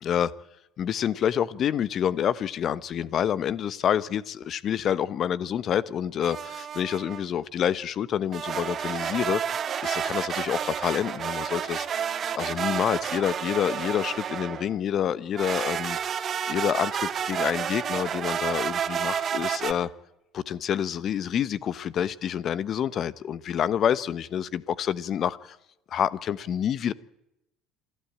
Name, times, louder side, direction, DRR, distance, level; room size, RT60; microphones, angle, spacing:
voice 1, 0.0-0.3 0.8-9.4 9.8-12.1 12.3-19.9 20.3-25.6 25.9-26.9, left 9 dB, 50° left, 1.0 m, -28 dB
sound 1, 6.2-7.2 8.3-14.7 15.4-19.7, right 8 dB, 45° right, 1.8 m, -30 dB
27.5 x 13.0 x 8.8 m
hypercardioid pair, 70°, 0 cm